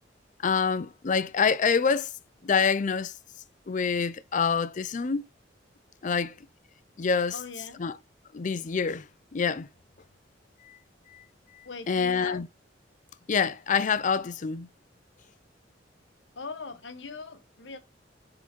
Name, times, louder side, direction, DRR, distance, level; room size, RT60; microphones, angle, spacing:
voice 1, 0.4-2.1 2.4-3.1 3.7-5.3 6.0-6.3 7.0-7.4 7.8-8.0 8.3-9.7 10.7-10.8 11.1-11.2 11.5-12.5 13.3-14.7, left 5 dB, 45° left, 0.5 m, -26 dB
voice 2, 7.3-7.8 11.6-12.4 16.3-17.8, left 4 dB, 85° left, 1.1 m, -40 dB
7.2 x 3.9 x 4.3 m
head